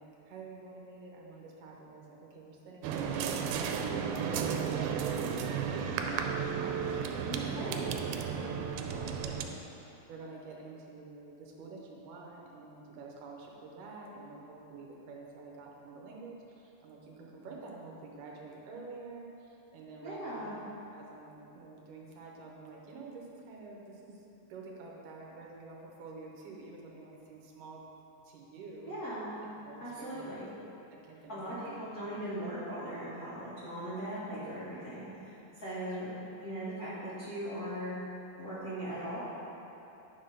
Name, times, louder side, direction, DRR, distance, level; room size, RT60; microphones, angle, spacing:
voice 1, 0.0-27.8 28.2-28.9 29.6-30.4 30.9-31.8 35.7-36.2, right 3 dB, 70° right, -2 dB, 2.3 m, -49 dB
sound 1, 2.8-9.5, right 7 dB, 85° right, 2.5 m, -33 dB
voice 2, 7.3-7.9 20.0-20.6 28.8-29.3 29.8-30.4 31.3-36.1 36.4-37.9 38.4-39.2, right 1 dB, 55° left, -12 dB, 1.0 m, -39 dB
9.6 x 3.7 x 5.5 m, 2.9 s
omnidirectional pair, 4.3 m